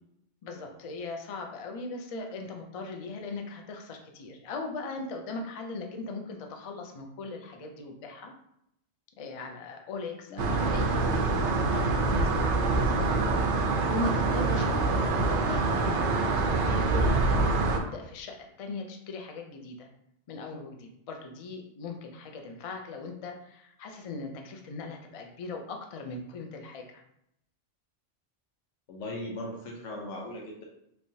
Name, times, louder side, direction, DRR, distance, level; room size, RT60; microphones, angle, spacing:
voice 1, 0.4-8.3 9.2-13.3 13.9-19.9 20.3-27.0, left 3 dB, 55° left, 3 dB, 0.4 m, -39 dB
voice 2, 10.3-10.7 28.9-30.6, left 1 dB, 85° left, -1 dB, 1.0 m, -39 dB
sound 1, 10.4-17.8, right 3 dB, 75° right, 0.9 m, -25 dB
3.3 x 3.0 x 2.7 m, 0.76 s
omnidirectional pair, 1.2 m